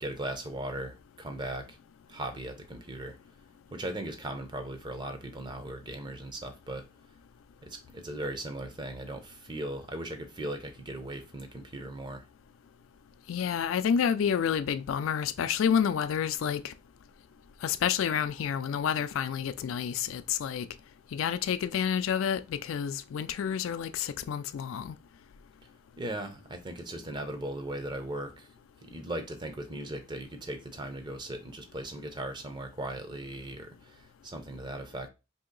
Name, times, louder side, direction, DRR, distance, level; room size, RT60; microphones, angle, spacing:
voice 1, 0.0-1.8 2.1-3.2 3.7-6.8 7.6-12.3 26.0-28.5 28.8-35.1, right 1 dB, 20° right, 0.5 m, -38 dB
voice 2, 13.3-16.7 17.6-20.7 21.1-25.0, left 8 dB, 75° left, 0.3 m, -29 dB
2.9 x 2.7 x 3.8 m
head